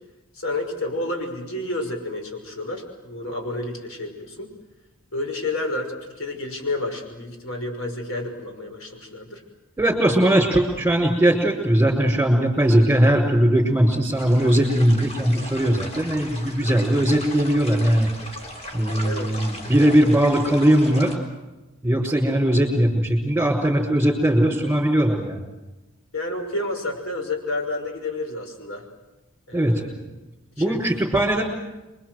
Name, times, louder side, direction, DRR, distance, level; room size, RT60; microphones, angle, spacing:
voice 1, 0.3-4.5 5.1-9.4 16.6-17.1 19.0-19.4 24.6-24.7 26.1-28.9 29.5-30.0 30.6-30.8, left 2 dB, 65° left, 4 dB, 5.8 m, -30 dB
voice 2, 9.8-18.1 18.7-21.1 21.8-25.4 29.5-29.8 30.6-31.4, right 1 dB, 10° right, -5 dB, 4.9 m, -19 dB
sound 1, 14.2-21.2, left 1 dB, 30° left, 4.2 m, -37 dB
27.5 x 23.5 x 7.9 m, 1.1 s
head